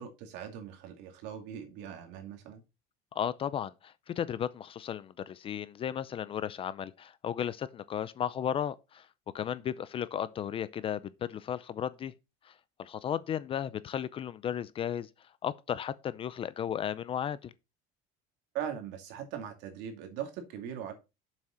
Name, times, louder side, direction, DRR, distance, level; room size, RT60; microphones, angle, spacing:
voice 1, 0.0-2.6 18.5-20.9, right 9 dB, 65° right, 2.4 m, -40 dB
voice 2, 3.1-9.1 9.3-12.1 12.4-12.5 12.8-15.1 15.4-17.5, left 9 dB, 30° left, 0.5 m, -34 dB
7.5 x 6.2 x 4.4 m
cardioid pair, 150°, 19 cm